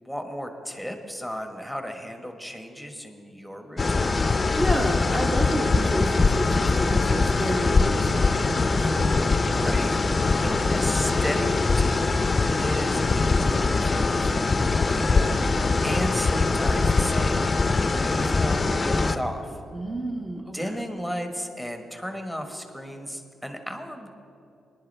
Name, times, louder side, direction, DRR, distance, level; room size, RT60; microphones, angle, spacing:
voice 1, 0.0-4.1 9.6-10.0 10.4-17.5 18.0-19.6 20.5-24.1, equal, 5° right, 4 dB, 1.3 m, -34 dB
sound 1, 3.8-19.2, left 3 dB, 30° left, 0.5 m, -22 dB
voice 2, 4.6-9.2 19.7-20.8, right 1 dB, 25° right, 0 dB, 1.1 m, -30 dB
19.0 x 11.0 x 3.4 m, 2.8 s
cardioid pair, 75°, 0 cm